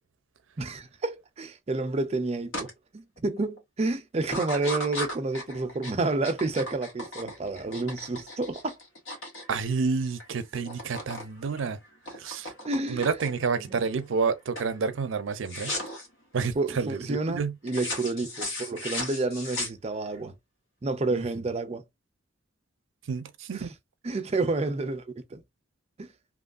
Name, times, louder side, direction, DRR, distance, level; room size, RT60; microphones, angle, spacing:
voice 1, 0.6-8.8 12.6-13.1 13.6-13.9 16.5-20.3 20.8-21.8 23.5-23.7 24.0-25.0 25.3-25.4 26.0-26.1, right 3 dB, 35° right, 0.4 m, -30 dB
sound 1, 2.5-2.7 3.2-3.6 4.2-10.3 10.5-11.3 11.6-13.5 14.0-14.3 14.5-14.8 15.4-16.1 17.7-20.2, left 1 dB, 85° left, 1.1 m, -36 dB
voice 2, 9.5-11.8 12.2-12.5 12.9-15.7 16.3-17.0 17.3-17.5 21.1-21.2 23.1-23.7, right 5 dB, 85° right, 0.5 m, -29 dB
3.0 x 2.3 x 2.4 m
head